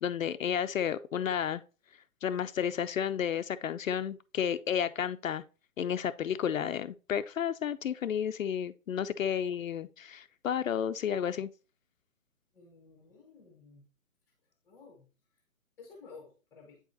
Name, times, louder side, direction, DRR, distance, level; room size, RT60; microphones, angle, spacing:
voice 1, 0.0-1.6 2.2-5.4 5.8-11.5, left 8 dB, 70° left, 0.5 m, -32 dB
voice 2, 12.5-13.8 14.6-15.1 15.8-16.8, left 4 dB, 5° left, 0.8 m, -53 dB
8.6 x 4.8 x 2.6 m
hypercardioid pair, 160°, 42 cm